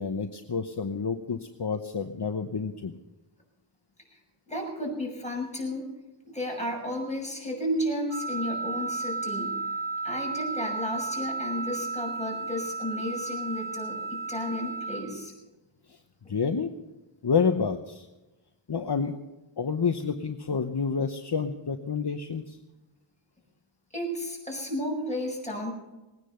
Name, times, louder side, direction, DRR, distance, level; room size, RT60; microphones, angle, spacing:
voice 1, 0.0-2.9 16.3-16.7 17.2-18.1 18.7-19.2 19.6-22.6, left 5 dB, 50° left, 7 dB, 0.9 m, -29 dB
voice 2, 4.5-5.9 6.2-9.5 10.0-15.3 23.9-25.7, equal, 15° left, -1 dB, 6.4 m, -33 dB
Wind instrument woodwind instrument, 8.1-15.0, right 3 dB, 70° right, 5.1 m, -33 dB
20.5 x 9.8 x 6.9 m, 1.1 s
wide cardioid pair, 60°, 49 cm